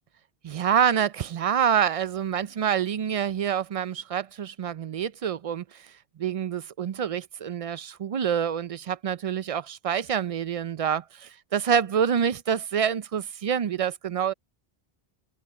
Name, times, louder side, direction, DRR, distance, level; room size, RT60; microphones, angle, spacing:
voice 1, 0.4-5.9 6.2-14.3, right 8 dB, 55° right, 0.4 m, -27 dB
omnidirectional pair, 1.0 m